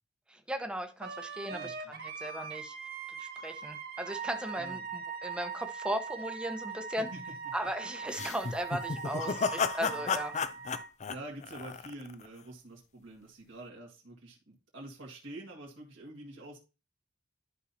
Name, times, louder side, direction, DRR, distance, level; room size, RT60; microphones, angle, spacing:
voice 1, 0.3-2.7 3.2-7.1 7.5-10.3, equal, 5° right, 6 dB, 0.9 m, -37 dB
Wind instrument woodwind instrument, 1.0-10.9, right 6 dB, 55° right, 1.3 m, -41 dB
voice 2, 1.5-2.0 4.6-4.9 7.1-7.2 9.2-9.4 9.9-10.1 10.5-10.6 11.1-16.6, right 1 dB, 80° right, -2 dB, 1.8 m, -47 dB
sound 1, 8.1-12.3, left 5 dB, 40° left, 0.4 m, -33 dB
11.5 x 5.6 x 2.7 m, 0.31 s
head